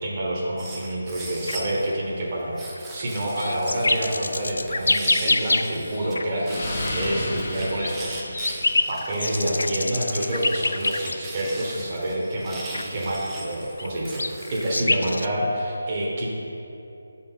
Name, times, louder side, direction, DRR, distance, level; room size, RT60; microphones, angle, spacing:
voice 1, 0.0-8.5 8.9-14.2 14.5-16.3, right 1 dB, 35° right, -4 dB, 1.3 m, -28 dB
sound 1, 0.6-1.9 2.6-6.2 6.5-14.8, right 2 dB, 15° right, 0.7 m, -40 dB
sound 2, 1.5-1.7 2.8-5.9 6.2-6.3 7.5-11.4 11.7-11.8 12.7-12.9 13.5-15.3, left 2 dB, 70° left, 0.3 m, -26 dB
Explosion, 5.3-9.2, left 1 dB, 55° left, 1.4 m, -33 dB
6.1 x 4.2 x 5.6 m, 2.8 s
figure-of-eight pair, 155°, 0 cm